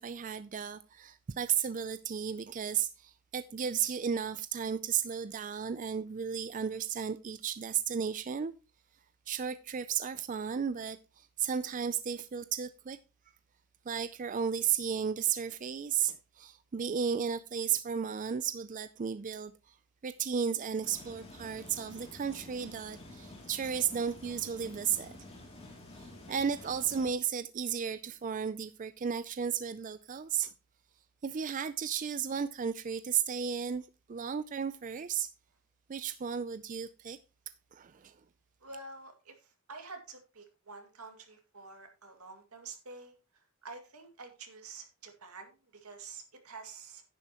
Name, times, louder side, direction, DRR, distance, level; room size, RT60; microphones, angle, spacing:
voice 1, 0.0-8.5 9.3-13.0 13.9-19.7 20.0-25.1 26.0-30.5 31.2-35.3 35.9-37.2 37.7-38.1, right 7 dB, 35° right, 0.4 m, -34 dB
sound 1, 20.8-27.1, left 2 dB, 30° left, 2.7 m, -50 dB
voice 2, 38.6-43.1 43.6-47.0, right 4 dB, 85° right, 2.3 m, -48 dB
10.5 x 9.7 x 3.0 m
head